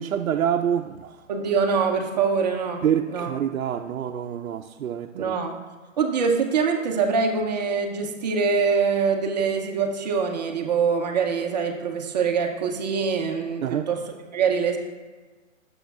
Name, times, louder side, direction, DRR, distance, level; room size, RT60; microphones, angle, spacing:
voice 1, 0.0-1.2 2.8-5.4 13.6-13.9, right 9 dB, 85° right, 4 dB, 0.6 m, -26 dB
voice 2, 1.3-3.3 5.1-5.6 6.0-14.8, right 5 dB, 30° right, 2 dB, 0.6 m, -24 dB
11.5 x 7.0 x 2.4 m, 1.4 s
hypercardioid pair, 150°, 40 cm